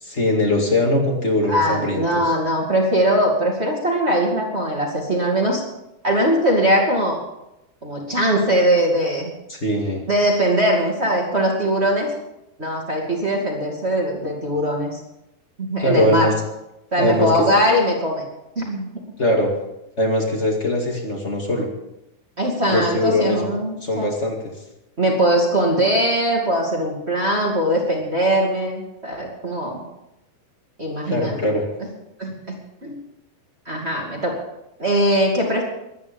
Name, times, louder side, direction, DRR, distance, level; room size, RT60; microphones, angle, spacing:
voice 1, 0.0-2.3 9.5-10.0 15.8-16.3 17.0-17.3 19.2-19.5 20.0-21.7 22.7-23.4 23.8-24.5 31.1-31.6, left 1 dB, 25° left, 1 dB, 1.4 m, -21 dB
voice 2, 1.5-5.6 6.0-7.2 7.8-9.3 10.1-12.1 12.6-15.0 15.6-16.3 16.9-18.2 18.6-18.9 22.4-24.1 25.0-29.8 30.8-31.4 32.2-32.6 32.8-33.0 33.7-34.4 34.8-35.6, equal, 20° right, -2 dB, 1.8 m, -21 dB
23.5 x 9.8 x 5.3 m, 0.89 s
omnidirectional pair, 4.8 m